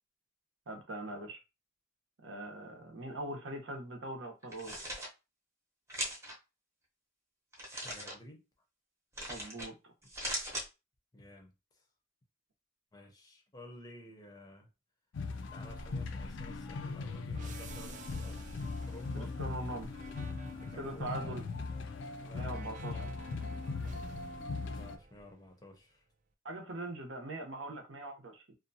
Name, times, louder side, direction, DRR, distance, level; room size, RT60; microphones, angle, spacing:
voice 1, 0.7-1.4 2.2-4.7 9.3-9.7 19.1-19.9 20.8-21.4 22.3-23.0 26.4-28.5, right 1 dB, 75° right, 0.8 m, -41 dB
sound 1, 4.4-5.1 5.9-6.3 7.5-8.1 9.1-9.7 10.0-10.7, equal, 15° right, 0.8 m, -39 dB
voice 2, 7.8-8.5 11.1-11.9 12.9-14.7 15.5-18.4 18.9-19.4 20.5-21.4 22.2-23.2 24.7-26.0, left 1 dB, 20° left, 0.6 m, -53 dB
sound 2, 15.1-25.0, left 3 dB, 65° left, 0.4 m, -39 dB
sound 3, 17.3-25.8, right 4 dB, 40° right, 0.3 m, -54 dB
2.6 x 2.2 x 2.6 m
head